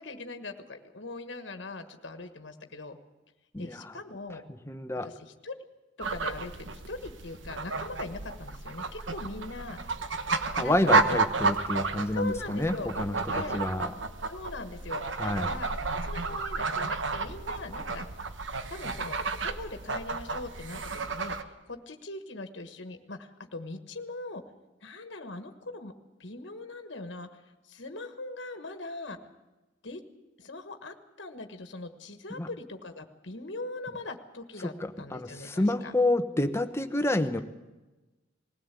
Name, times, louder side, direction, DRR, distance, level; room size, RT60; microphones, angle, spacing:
voice 1, 0.0-3.0 3.6-4.4 5.0-5.5 6.0-9.8 10.6-11.2 12.1-12.9 13.3-13.6 14.3-18.1 18.7-24.4 24.8-25.9 26.2-29.2 29.8-30.0 30.4-35.9, left 2 dB, 70° left, 7 dB, 1.5 m, -41 dB
voice 2, 3.5-4.0 4.7-5.1 10.6-13.2 13.5-13.9 15.2-15.5 32.3-32.5 34.6-34.7 35.1-37.4, left 1 dB, 15° left, 7 dB, 1.0 m, -28 dB
sound 1, 6.0-21.4, right 3 dB, 80° right, 1.2 m, -31 dB
20.0 x 16.5 x 8.3 m, 1.1 s
head